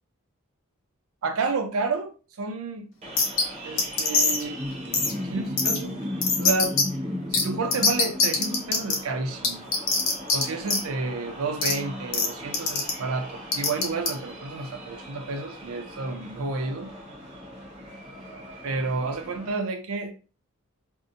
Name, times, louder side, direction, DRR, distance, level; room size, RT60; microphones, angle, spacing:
voice 1, 1.2-2.1 2.4-2.9 3.6-4.6 5.2-6.0 6.4-6.8 7.3-9.7 10.3-16.9 18.6-20.1, right 3 dB, 80° right, 0.5 m, -30 dB
sound 1, 3.0-19.5, equal, 30° right, 0.7 m, -37 dB
sound 2, 3.2-3.4 3.8-4.4 4.9-5.1 5.6-5.8 6.2-6.8 7.3-7.4 7.7-9.0 9.4-10.4 10.7-10.8 11.6-11.7 12.1-12.3 12.5-12.9 13.5-14.1, left 4 dB, 65° left, 0.6 m, -22 dB
2.7 x 2.1 x 2.5 m
head